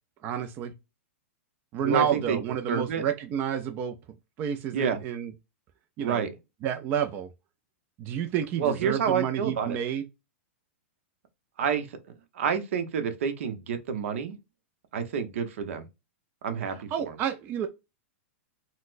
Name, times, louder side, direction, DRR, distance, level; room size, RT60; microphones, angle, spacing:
voice 1, 0.2-0.7 1.7-4.0 4.4-5.3 6.0-6.2 6.6-7.3 8.0-10.1 16.9-17.7, right 9 dB, 25° right, 0.4 m, -29 dB
voice 2, 1.8-2.4 2.7-3.0 4.7-5.0 6.0-6.4 8.6-9.8 11.6-12.0 12.3-14.4 14.9-15.9 16.4-17.1, right 6 dB, 70° right, 0.7 m, -28 dB
4.0 x 2.1 x 2.4 m
supercardioid pair, 155°, 7 cm